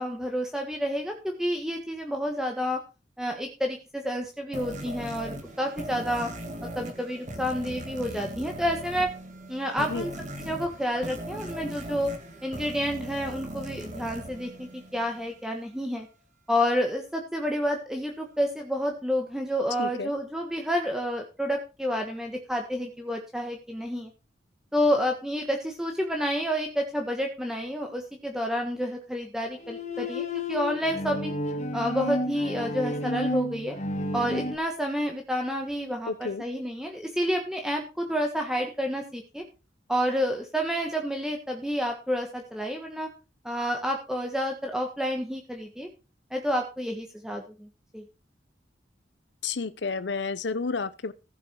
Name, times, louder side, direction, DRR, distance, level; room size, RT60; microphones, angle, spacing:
voice 1, 0.0-2.8 3.2-6.3 6.7-9.1 9.5-10.1 10.4-12.1 12.4-16.1 16.5-24.1 24.7-31.3 31.7-33.7 34.1-39.4 39.9-43.1 43.4-45.9 46.3-48.0, equal, 5° right, 1.4 m, -29 dB
sound 1, 4.5-15.3, right 1 dB, 45° right, 2.5 m, -39 dB
voice 2, 19.8-20.1 36.1-36.4 49.4-51.1, left 4 dB, 75° left, 0.7 m, -31 dB
Bowed string instrument, 29.5-34.6, left 1 dB, 40° left, 1.8 m, -31 dB
15.0 x 7.1 x 4.6 m
head